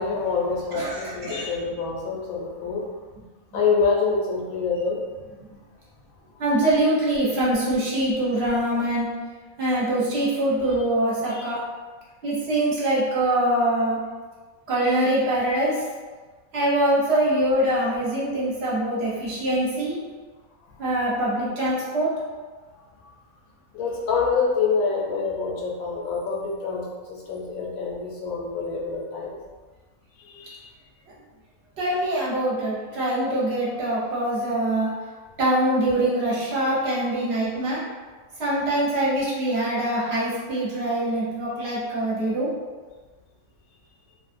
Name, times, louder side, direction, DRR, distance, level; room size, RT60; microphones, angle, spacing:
voice 1, 0.0-3.0 3.5-5.0 10.7-10.8 11.3-11.5 23.7-29.4 30.2-30.7, left 5 dB, 80° left, -3 dB, 1.0 m, -26 dB
voice 2, 0.7-1.4 6.4-9.1 9.6-11.6 12.2-14.0 14.7-15.8 16.5-20.0 20.8-22.1 31.8-34.9 35.4-37.8 38.4-42.5, right 1 dB, 55° right, -7 dB, 0.9 m, -23 dB
2.5 x 2.3 x 2.5 m, 1.4 s
omnidirectional pair, 1.4 m